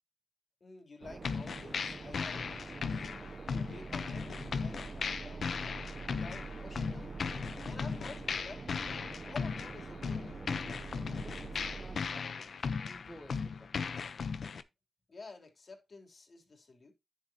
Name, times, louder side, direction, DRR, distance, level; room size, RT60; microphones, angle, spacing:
voice 1, 0.6-3.1 3.5-5.6 6.1-7.2 7.6-8.7 9.2-10.5 15.1-16.9, left 3 dB, 50° left, 3.5 m, -51 dB
By the sea, 1.0-12.0, right 4 dB, 50° right, 0.8 m, -45 dB
sound 1, 1.2-14.6, left 5 dB, 70° left, 0.8 m, -37 dB
voice 2, 11.2-13.9, equal, 5° right, 1.3 m, -55 dB
10.0 x 7.1 x 2.9 m
cardioid pair, 75°, 0 cm